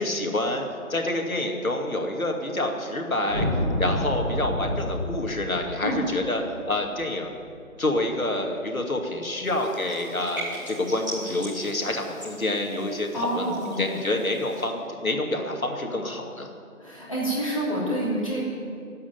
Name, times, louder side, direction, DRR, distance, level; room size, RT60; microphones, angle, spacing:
voice 1, 0.0-3.5 3.8-6.4 6.7-7.3 7.8-16.5, left 1 dB, 70° left, 2 dB, 2.5 m, -27 dB
sound 1, 3.3-7.7, left 1 dB, 45° right, 2.2 m, -29 dB
sound 2, 9.4-14.6, right 1 dB, 15° right, 2.9 m, -40 dB
voice 2, 13.1-13.8 16.8-18.4, right 1 dB, 20° left, -7 dB, 3.3 m, -27 dB
13.5 x 8.6 x 9.4 m, 2.5 s
figure-of-eight pair, 180°, 43 cm